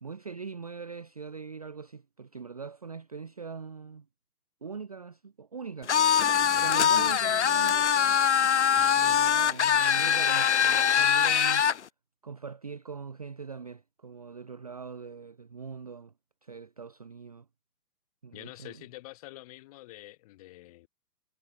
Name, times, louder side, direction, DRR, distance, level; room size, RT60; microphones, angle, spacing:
voice 1, 0.0-4.1 4.6-5.9 6.5-8.2 9.0-11.7 12.2-16.1 16.4-17.5 18.2-18.8, right 5 dB, 25° right, 0.7 m, -42 dB
sound 1, 5.9-11.8, left 8 dB, 50° left, 0.6 m, -23 dB
voice 2, 8.7-9.2 18.3-20.9, left 18 dB, 20° left, 5.5 m, -47 dB
hypercardioid pair, 180°, 48 cm